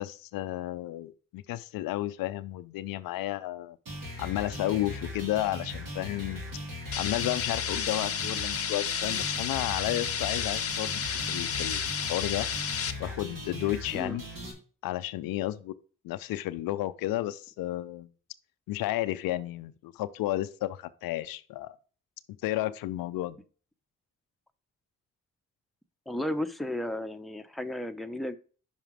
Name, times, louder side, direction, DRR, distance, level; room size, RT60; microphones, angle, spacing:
voice 1, 0.0-3.8 4.2-6.4 7.0-12.5 13.0-14.2 14.8-15.7 16.0-18.1 18.7-21.8 22.4-23.4, left 15 dB, 80° left, 0.5 m, -32 dB
sound 1, 3.9-14.5, left 1 dB, 70° right, 2.0 m, -39 dB
sound 2, 6.9-12.9, left 7 dB, 45° left, 0.7 m, -32 dB
voice 2, 26.1-28.4, left 1 dB, ahead, 0.7 m, -33 dB
5.9 x 4.9 x 4.8 m
supercardioid pair, 45°, 34 cm